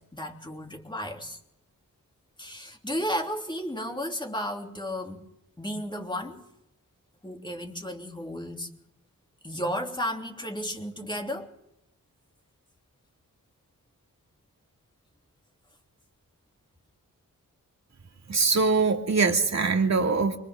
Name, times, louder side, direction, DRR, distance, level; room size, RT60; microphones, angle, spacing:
voice 1, 0.0-1.4 2.4-5.2 5.6-6.4 7.2-8.7 9.4-11.5, equal, 15° left, 2 dB, 3.0 m, -33 dB
voice 2, 18.3-20.4, right 4 dB, 55° right, 2 dB, 2.4 m, -23 dB
29.0 x 24.5 x 3.7 m, 0.81 s
wide cardioid pair, 105°, 33 cm